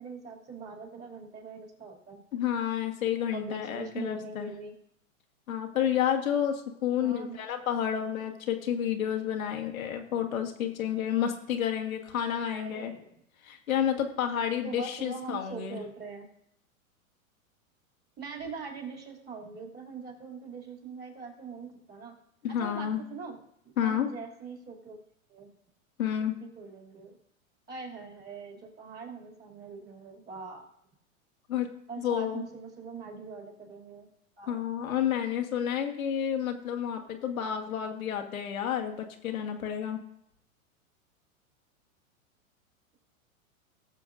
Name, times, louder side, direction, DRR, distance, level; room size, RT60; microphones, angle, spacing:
voice 1, 0.0-2.2 3.3-4.7 7.0-7.4 12.2-13.1 14.6-16.3 18.2-22.1 22.5-23.4 23.6-25.0 25.3-25.5 26.4-27.2 27.7-30.7 31.9-34.1 34.4-34.8, right 5 dB, 25° right, 1 dB, 2.7 m, -42 dB
voice 2, 2.3-4.5 5.5-12.9 13.4-15.8 22.4-23.0 23.8-24.1 26.0-26.4 31.5-31.7 32.0-32.4 34.5-40.0, left 9 dB, 75° left, 3 dB, 1.5 m, -30 dB
20.0 x 6.9 x 2.5 m, 0.76 s
hypercardioid pair, 110°, 42 cm